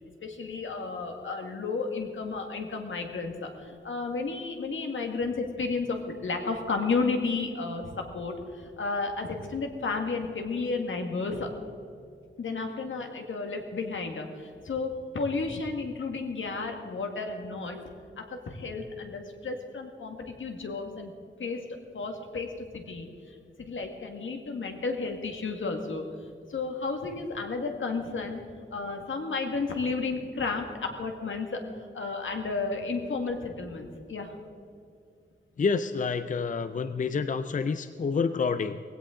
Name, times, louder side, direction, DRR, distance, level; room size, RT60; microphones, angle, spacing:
voice 1, 0.2-11.5 12.4-17.8 18.2-21.1 21.4-26.1 26.5-28.4 28.7-31.6 31.9-34.3, left 4 dB, 80° left, 3 dB, 1.9 m, -32 dB
voice 2, 35.6-38.8, left 5 dB, 40° left, 11 dB, 0.5 m, -28 dB
19.5 x 16.5 x 3.8 m, 2.4 s
wide cardioid pair, 135°, 20 cm